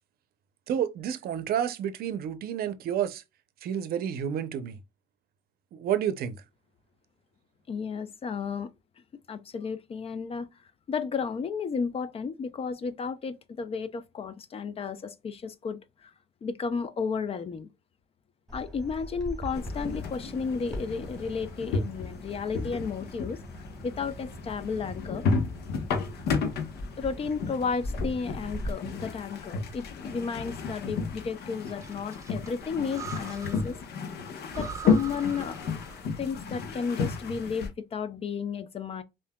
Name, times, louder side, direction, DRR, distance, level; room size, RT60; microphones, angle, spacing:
voice 1, 0.7-3.2 3.6-4.8 5.7-6.4, right 9 dB, 65° right, 0.6 m, -30 dB
voice 2, 7.7-8.7 9.3-10.5 10.9-16.1 16.4-17.7 18.5-23.4 23.8-25.3 27.0-33.8 34.6-35.6 36.2-39.0, left 5 dB, 35° left, 0.5 m, -33 dB
Bird vocalization bird call bird song, 18.5-28.7, equal, 5° left, 2.2 m, -41 dB
sound 1, 19.5-37.7, left 5 dB, 70° left, 0.9 m, -33 dB
Breathing, 31.6-33.8 34.1-34.2 34.5-36.2, right 6 dB, 20° right, 0.7 m, -43 dB
5.4 x 2.6 x 2.2 m
cardioid pair, 110°, 17 cm